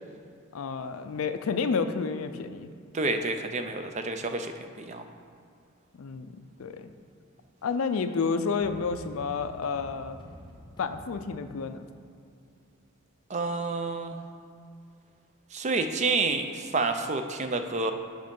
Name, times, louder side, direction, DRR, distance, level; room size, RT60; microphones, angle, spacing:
voice 1, 0.5-2.7 6.0-6.3 6.6-6.9 7.6-10.2 10.8-11.8, left 5 dB, 70° left, 10 dB, 0.4 m, -30 dB
voice 2, 2.9-5.1 13.3-14.2 15.5-17.9, right 3 dB, 30° right, 7 dB, 0.4 m, -29 dB
sound 1, 8.6-12.6, left 1 dB, 20° left, 0.8 m, -49 dB
7.6 x 5.3 x 5.3 m, 2.3 s
head